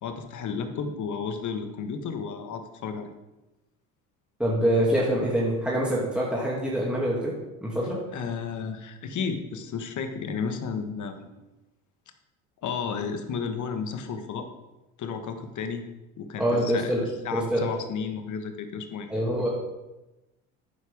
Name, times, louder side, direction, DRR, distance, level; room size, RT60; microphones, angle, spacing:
voice 1, 0.0-3.1 8.1-11.3 12.6-14.5 15.0-15.8 16.2-16.9 17.2-19.1, left 6 dB, 45° left, 7 dB, 1.5 m, -32 dB
voice 2, 4.4-7.3 7.6-8.0 16.4-17.0 17.3-17.7 19.1-19.5, equal, ahead, -5 dB, 2.5 m, -25 dB
11.5 x 9.3 x 3.6 m, 1.0 s
hypercardioid pair, 70°, 43 cm